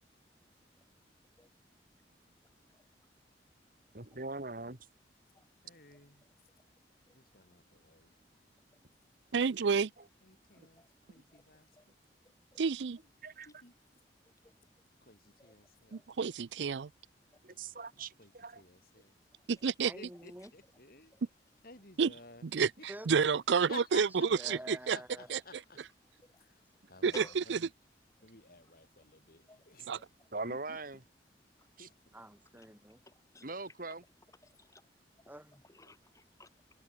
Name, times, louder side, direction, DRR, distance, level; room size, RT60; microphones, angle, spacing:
voice 1, 3.9-4.8 10.0-10.1 10.6-10.7 13.2-13.5 17.4-18.6 30.3-31.0 31.8-31.9 33.4-34.0, right 3 dB, 50° right, 2.8 m, -41 dB
voice 2, 5.6-6.3 7.1-8.4 10.2-11.7 13.5-13.7 15.0-16.0 17.5-19.1 19.9-21.1 21.6-22.5 23.7-25.8 26.1-27.7 28.2-30.8 31.8-31.9, left 3 dB, 55° left, 7.6 m, -54 dB
voice 3, 9.3-9.9 12.6-13.0 15.9-16.9 19.5-19.9 22.0-22.1 22.4-24.1 24.5-25.0 25.3-25.4 27.0-27.6 29.9-30.0, right 5 dB, 80° right, 0.5 m, -30 dB
voice 4, 19.8-20.5 22.9-23.1 24.3-25.3 32.1-33.0 35.3-35.6, right 1 dB, 10° right, 4.2 m, -48 dB
voice 5, 34.5-34.8 35.7-36.5, left 2 dB, 20° left, 2.9 m, -51 dB
head